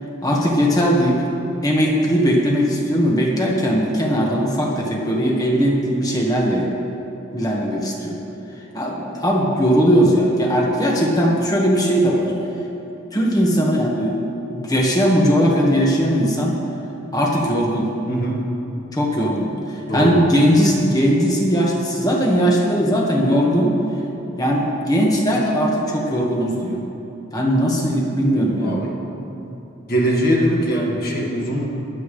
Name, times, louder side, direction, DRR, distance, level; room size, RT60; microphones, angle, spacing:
voice 1, 0.2-1.3 1.6-6.7 7.3-8.2 8.7-12.3 13.1-14.2 14.5-16.5 17.1-17.9 18.9-19.5 19.9-23.7 24.4-26.8 27.3-28.8, equal, 20° left, -2 dB, 1.7 m, -19 dB
voice 2, 18.1-18.4 19.9-20.1 28.6-28.9 29.4-29.5 29.9-31.6, equal, 50° left, -2 dB, 2.0 m, -21 dB
24.0 x 8.2 x 3.3 m, 2.9 s
head